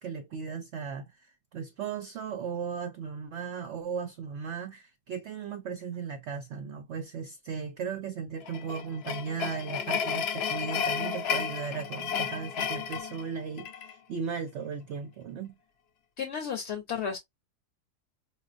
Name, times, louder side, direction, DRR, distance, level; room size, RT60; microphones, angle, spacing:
voice 1, 0.0-15.6, right 6 dB, 70° right, 0.6 m, -36 dB
sound 1, 8.4-13.9, left 7 dB, 80° left, 0.5 m, -32 dB
voice 2, 16.2-17.2, left 7 dB, 55° left, 0.8 m, -33 dB
4.8 x 2.2 x 2.4 m
omnidirectional pair, 1.7 m